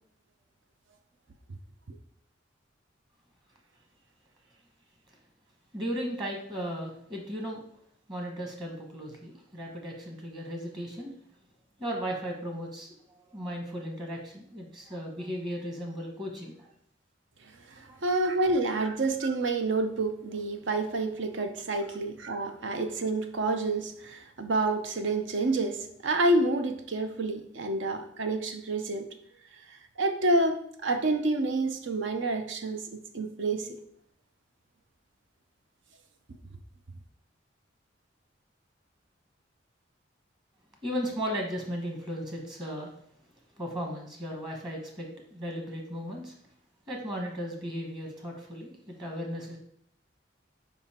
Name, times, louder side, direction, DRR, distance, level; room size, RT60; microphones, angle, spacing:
voice 1, 5.7-7.6 8.1-11.1 11.8-13.0 13.3-16.7 17.9-18.0 40.8-42.9 43.6-46.3 46.9-49.6, equal, 25° right, 1 dB, 1.2 m, -36 dB
voice 2, 17.8-29.1 30.0-33.8, right 2 dB, 75° right, 7 dB, 0.7 m, -28 dB
5.5 x 4.9 x 4.3 m, 0.66 s
head